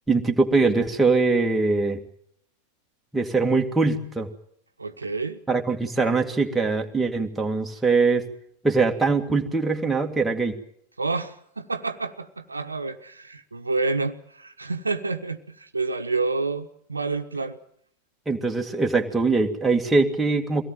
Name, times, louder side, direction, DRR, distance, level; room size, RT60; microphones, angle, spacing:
voice 1, 0.1-2.0 3.1-4.3 5.5-8.3 8.6-10.5 18.3-20.6, right 3 dB, 5° right, 2 dB, 2.1 m, -22 dB
voice 2, 4.8-5.4 11.0-17.6, right 3 dB, 80° right, 7 dB, 1.1 m, -29 dB
23.5 x 18.0 x 9.2 m, 0.70 s
figure-of-eight pair, 90°, 0 cm